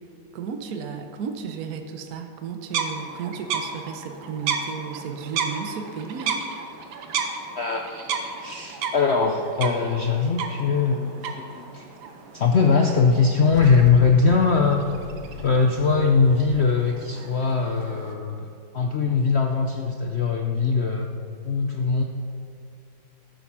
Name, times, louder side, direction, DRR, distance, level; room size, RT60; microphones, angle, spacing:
voice 1, 0.3-6.5, right 6 dB, 60° right, 6 dB, 1.2 m, -34 dB
sound 1, 2.7-18.1, right 5 dB, 90° right, 1.7 m, -34 dB
voice 2, 7.5-11.9 12.3-14.8 15.4-18.5 18.7-21.1 21.4-22.0, left 5 dB, 75° left, 2 dB, 0.6 m, -21 dB
Car / Engine starting / Idling, 13.1-16.6, left 4 dB, 50° left, 1.2 m, -39 dB
13.5 x 7.8 x 5.9 m, 2.4 s
omnidirectional pair, 2.1 m